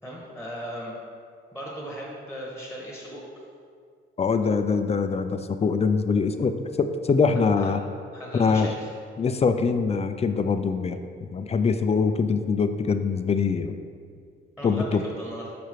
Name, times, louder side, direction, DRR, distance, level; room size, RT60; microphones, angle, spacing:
voice 1, 0.0-0.9 1.5-3.2 7.6-7.7 8.1-8.9 14.6-14.9 15.2-15.5, equal, 5° right, -5 dB, 1.4 m, -37 dB
voice 2, 4.2-7.8 8.3-8.7 9.2-11.0 11.3-13.7 14.6-15.0, left 5 dB, 30° left, 9 dB, 0.4 m, -23 dB
6.7 x 5.6 x 3.1 m, 2.2 s
cardioid pair, 90°, 21 cm